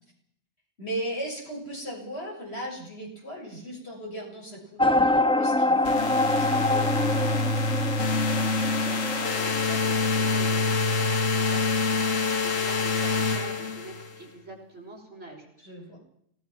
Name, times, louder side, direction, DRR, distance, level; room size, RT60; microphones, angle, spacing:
voice 1, 0.8-7.5 15.6-16.0, right 1 dB, 55° left, -1 dB, 7.1 m, -37 dB
sound 1, 4.8-10.3, left 2 dB, 5° left, 0.6 m, -25 dB
sound 2, 5.8-14.2, left 3 dB, 90° left, 1.7 m, -26 dB
voice 2, 8.5-12.0 12.4-15.5 15.8-16.0, right 2 dB, 65° right, -1 dB, 5.9 m, -44 dB
25.5 x 18.5 x 6.1 m, 0.72 s
omnidirectional pair, 1.3 m